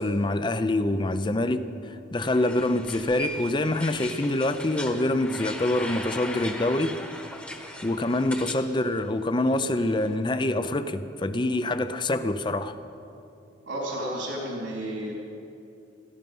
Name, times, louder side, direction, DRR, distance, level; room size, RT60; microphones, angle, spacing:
voice 1, 0.0-7.0 7.8-12.8, left 1 dB, 25° left, 11 dB, 0.5 m, -26 dB
sound 1, 2.2-8.6 8.9-10.1, equal, 5° left, 1.1 m, -39 dB
voice 2, 13.7-15.1, right 1 dB, 80° right, -3 dB, 3.8 m, -32 dB
16.5 x 14.0 x 5.4 m, 2.7 s
head